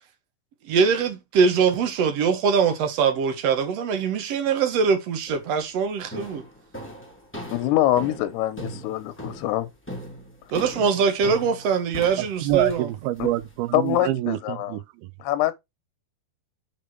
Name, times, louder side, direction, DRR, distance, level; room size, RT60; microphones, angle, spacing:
voice 1, 0.6-6.4 10.5-12.9, right 6 dB, 55° right, 1.9 m, -22 dB
sound 1, 5.3-5.6 6.1-14.1, equal, 5° left, 1.1 m, -39 dB
voice 2, 7.5-9.7 13.2-13.3 13.7-14.8 15.2-15.5, left 14 dB, 90° left, 2.9 m, -24 dB
voice 3, 12.2-15.1, right 16 dB, 80° right, 2.4 m, -26 dB
6.5 x 4.8 x 4.4 m
omnidirectional pair, 4.6 m